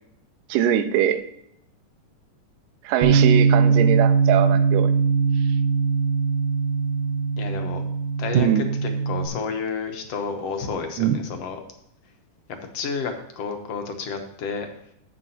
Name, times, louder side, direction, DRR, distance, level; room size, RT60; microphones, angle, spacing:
voice 1, 0.5-1.2 2.8-4.9 8.3-8.7 11.0-11.2, right 10 dB, 90° right, 10 dB, 2.3 m, -22 dB
Bass guitar, 3.0-9.3, right 5 dB, 65° right, 2.3 m, -20 dB
voice 2, 7.4-7.8 8.2-11.6 12.7-14.7, left 5 dB, 65° left, 5 dB, 1.7 m, -30 dB
13.0 x 8.0 x 2.8 m, 0.75 s
omnidirectional pair, 3.7 m